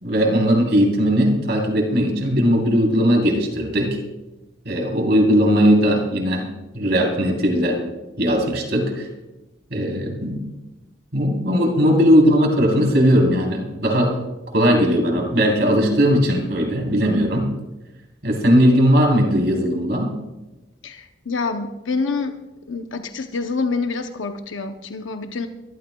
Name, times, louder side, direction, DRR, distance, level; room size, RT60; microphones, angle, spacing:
voice 1, 0.0-4.0 4.7-6.4 6.7-7.8 8.2-9.1 9.7-10.4 11.1-14.2 14.5-17.5 18.2-20.2, equal, 55° right, 0 dB, 3.6 m, -18 dB
voice 2, 20.8-22.4 22.7-25.5, left 4 dB, 85° left, 6 dB, 0.8 m, -26 dB
24.0 x 13.5 x 2.3 m, 1.0 s
head